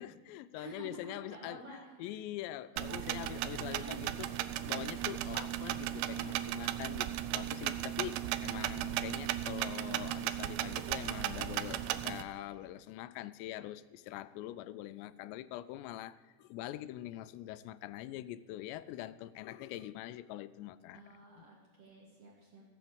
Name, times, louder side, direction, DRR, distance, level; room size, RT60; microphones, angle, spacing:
voice 1, 0.0-4.3 4.7-21.0 21.4-21.5, left 14 dB, 90° left, 15 dB, 2.7 m, -44 dB
voice 2, 0.6-2.1 2.9-3.0 3.3-4.6 20.9-22.6, right 3 dB, 50° right, -2 dB, 2.1 m, -51 dB
sound 1, 2.8-12.2, right 13 dB, 85° right, 2.7 m, -36 dB
15.5 x 6.7 x 7.9 m, 1.4 s
omnidirectional pair, 4.9 m